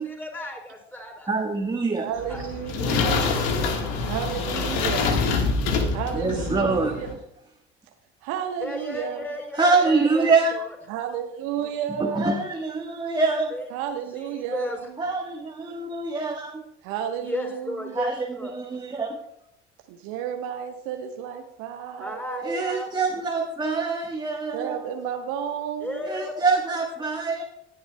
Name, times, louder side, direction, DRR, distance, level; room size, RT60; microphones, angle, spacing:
voice 1, 0.0-1.3 2.3-2.4 2.8-3.0 8.6-10.7 13.5-13.7 14.1-14.8 17.2-18.5 22.0-22.9 25.8-26.4, left 1 dB, 5° left, -1 dB, 4.0 m, -34 dB
voice 2, 1.3-2.1 6.1-7.0 9.6-10.6 12.0-13.5 15.0-16.6 17.9-19.2 22.4-24.7 26.0-27.4, right 4 dB, 15° right, 2 dB, 1.3 m, -25 dB
voice 3, 1.9-3.4 4.0-5.1 5.7-7.2 8.2-9.3 10.9-12.4 13.7-15.0 16.8-18.0 19.9-22.6 24.5-26.1, right 9 dB, 60° right, 5 dB, 1.2 m, -32 dB
sound 1, 2.2-7.1, left 4 dB, 65° left, 1.6 m, -25 dB
19.0 x 11.0 x 2.2 m, 0.78 s
figure-of-eight pair, 60°, 33 cm